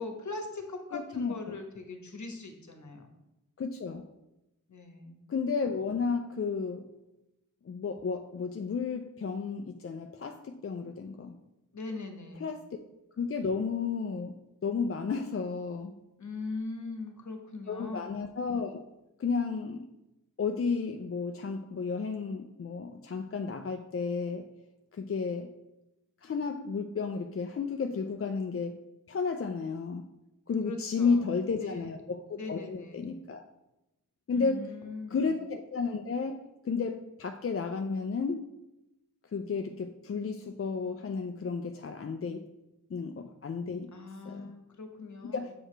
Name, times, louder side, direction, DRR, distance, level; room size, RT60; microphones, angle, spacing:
voice 1, 0.0-3.1 4.7-5.3 11.7-12.5 16.2-18.1 30.6-31.3 31.5-32.0 32.3-33.2 34.3-35.2 43.9-45.5, left 3 dB, 60° left, 4 dB, 1.1 m, -41 dB
voice 2, 0.9-1.6 3.6-4.1 5.3-6.9 7.6-11.4 12.4-12.8 13.2-14.4 14.6-15.9 17.7-18.8 19.2-19.9 20.4-24.5 24.9-25.5 26.2-28.8 29.1-30.0 30.5-33.4 34.3-34.7 35.1-36.4 36.6-38.4 39.3-42.4 42.9-43.9 44.3-44.5 45.2-45.5, left 5 dB, 40° left, 5 dB, 0.5 m, -32 dB
7.6 x 4.8 x 3.3 m, 0.93 s
cardioid pair, 60°, 33 cm